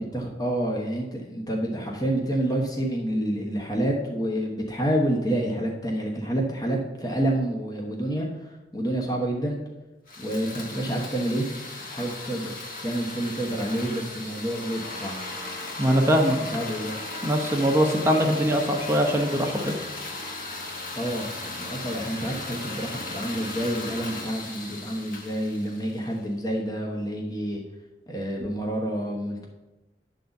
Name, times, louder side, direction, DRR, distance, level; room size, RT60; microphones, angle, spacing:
voice 1, 0.0-9.6 10.2-11.5 11.9-12.5 12.8-15.2 16.3-16.9 20.9-27.6 28.1-29.5, right 1 dB, 20° left, -1 dB, 0.9 m, -28 dB
sound 1, 10.1-26.2, left 2 dB, 50° left, 1.2 m, -37 dB
voice 2, 15.8-16.4 17.2-19.8, equal, 15° right, 1 dB, 0.8 m, -22 dB
9.3 x 3.9 x 7.0 m, 1.1 s
head